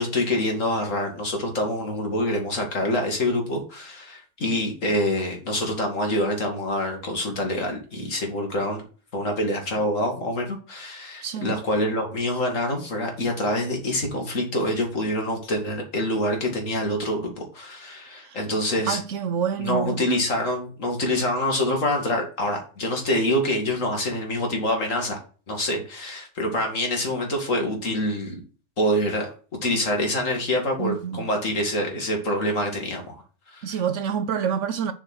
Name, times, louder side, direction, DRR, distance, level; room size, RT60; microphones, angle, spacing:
voice 1, 0.0-8.8 9.1-19.0 19.6-25.2 25.5-28.4 28.8-29.3 29.6-33.2 33.5-33.8, left 1 dB, 60° left, 2.6 m, -26 dB
voice 2, 11.2-11.5 18.2-18.4 18.9-20.0 30.8-31.2 33.6-34.9, right 7 dB, 65° right, 0.9 m, -27 dB
6.9 x 4.4 x 6.1 m
omnidirectional pair, 1.5 m